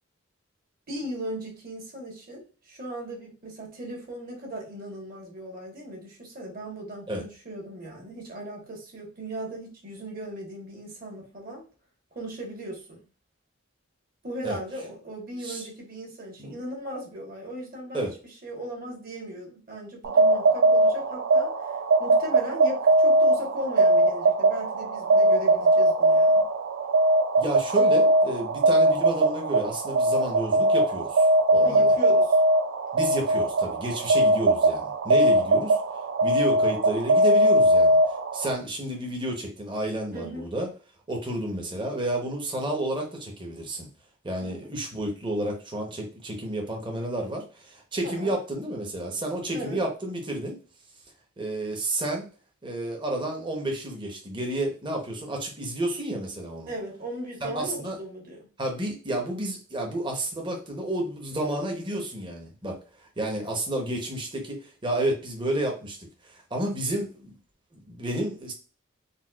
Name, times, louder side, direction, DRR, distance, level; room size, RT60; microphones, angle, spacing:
voice 1, 0.9-11.6 12.1-13.0 14.2-18.1 18.4-21.7 22.0-26.5 31.6-32.4 34.2-34.3 40.1-40.5 44.4-44.6 48.0-48.3 49.5-49.8 56.7-58.5, right 1 dB, 45° right, -1 dB, 1.2 m, -37 dB
sound 1, 20.0-38.5, right 1 dB, 65° right, 0.4 m, -21 dB
voice 2, 27.4-31.9 32.9-35.8 36.2-38.0 38.3-40.7 41.1-43.9 44.2-50.6 51.4-52.3 52.6-56.7 57.4-58.0 58.6-62.8 63.2-66.0 66.2-67.3 67.7-68.5, right 1 dB, 25° right, 1 dB, 0.8 m, -31 dB
4.0 x 2.3 x 2.3 m, 0.35 s
head